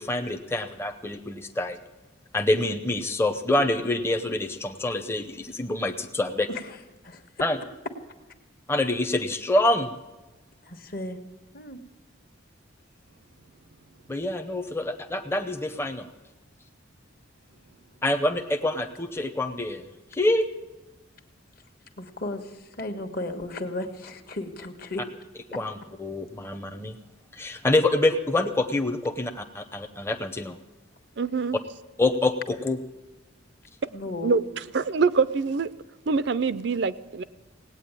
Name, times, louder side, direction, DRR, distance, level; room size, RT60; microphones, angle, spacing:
voice 1, 0.0-1.8 2.3-6.5 7.4-7.6 8.7-9.9 14.1-16.1 18.0-19.8 20.1-20.4 25.5-27.0 27.3-30.6 32.0-32.8, left 2 dB, 10° left, 6 dB, 0.7 m, -26 dB
voice 2, 10.6-11.2 11.5-11.8 14.4-14.7 22.0-25.0 33.9-34.4, left 1 dB, 50° left, 6 dB, 1.4 m, -35 dB
voice 3, 31.2-31.6 34.2-34.4 34.7-35.7 36.1-37.2, right 4 dB, 55° right, 15 dB, 0.5 m, -24 dB
18.0 x 8.9 x 8.9 m, 1.1 s
head